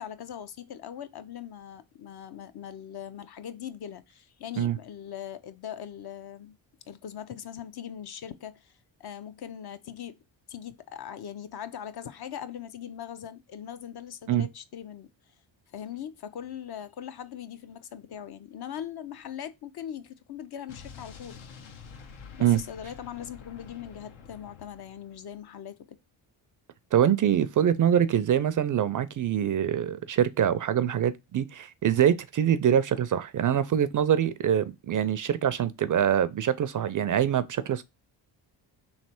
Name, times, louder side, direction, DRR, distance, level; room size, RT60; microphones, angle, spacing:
voice 1, 0.0-6.6 6.9-10.2 10.5-15.1 15.7-21.4 22.3-26.0, left 9 dB, 50° left, 0.6 m, -40 dB
Explosion, 20.7-25.5, left 6 dB, 75° left, 0.9 m, -48 dB
voice 2, 26.9-37.8, right 9 dB, 45° right, 0.4 m, -24 dB
3.2 x 2.9 x 4.3 m
cardioid pair, 65°, 49 cm